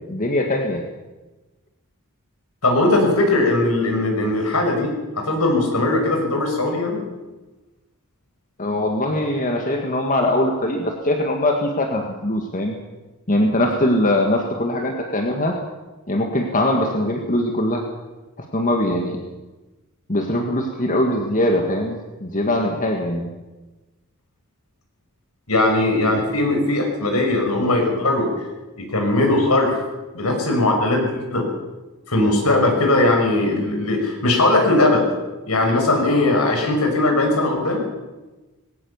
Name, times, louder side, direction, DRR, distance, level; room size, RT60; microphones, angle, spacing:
voice 1, 0.1-0.8 8.6-12.8 13.3-15.5 16.1-17.8 18.5-19.2 20.1-23.3, left 1 dB, 35° left, 3 dB, 2.0 m, -21 dB
voice 2, 2.6-7.0 25.5-28.3 28.8-29.8 30.1-31.5 32.1-35.1 35.4-37.8, left 2 dB, 80° left, 2 dB, 6.2 m, -19 dB
21.0 x 17.5 x 7.2 m, 1.1 s
head